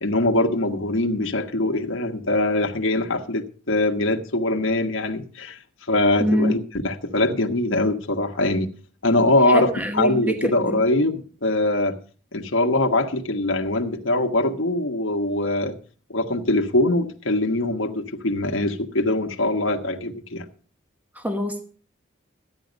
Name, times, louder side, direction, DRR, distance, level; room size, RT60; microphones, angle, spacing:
voice 1, 0.0-5.6 5.9-8.7 9.0-11.9 12.3-15.8 16.1-20.4, left 2 dB, 90° left, 1.4 m, -22 dB
voice 2, 6.2-6.5 9.5-10.8 21.2-21.7, equal, 10° right, 1.0 m, -25 dB
14.0 x 10.0 x 5.2 m
head